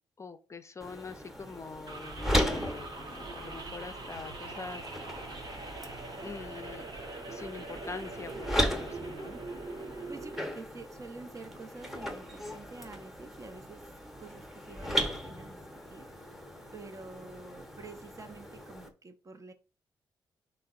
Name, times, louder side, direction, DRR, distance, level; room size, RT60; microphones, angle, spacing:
voice 1, 0.2-4.8 6.2-6.8 7.3-9.3, left 4 dB, 35° left, 0.4 m, -44 dB
sound 1, 0.8-18.9, equal, 5° right, 0.8 m, -37 dB
sound 2, 1.9-10.4, right 3 dB, 55° right, 0.9 m, -42 dB
voice 2, 10.1-13.9 14.2-16.1 16.7-19.5, right 3 dB, 35° right, 0.5 m, -48 dB
3.4 x 2.0 x 2.3 m
supercardioid pair, 50°, 9 cm